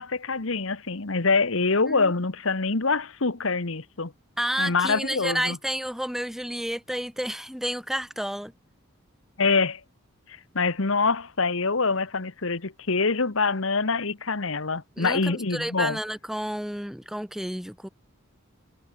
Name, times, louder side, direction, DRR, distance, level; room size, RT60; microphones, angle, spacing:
voice 1, 0.0-4.1 4.6-5.6 9.4-9.8 10.5-16.0, left 4 dB, 70° left, 1.3 m, -25 dB
voice 2, 4.4-8.5 15.0-17.9, equal, ahead, 0.8 m, -30 dB
head